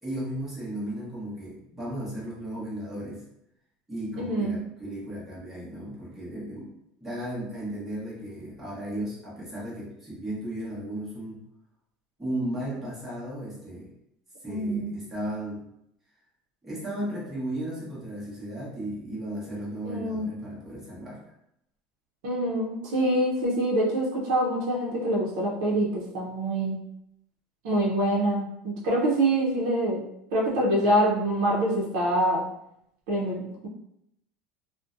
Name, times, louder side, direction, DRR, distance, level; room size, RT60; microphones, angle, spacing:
voice 1, 0.0-3.2 3.9-6.7 7.0-11.4 12.2-13.9 14.4-15.6 16.6-21.2, right 1 dB, 5° right, -9 dB, 0.8 m, -35 dB
voice 2, 4.2-4.6 14.5-14.9 19.8-20.4 22.2-26.8 27.6-30.0 30.3-32.4 33.1-33.7, right 1 dB, 70° right, -5 dB, 0.6 m, -25 dB
2.5 x 2.1 x 2.4 m, 0.79 s
cardioid pair, 165°, 3 cm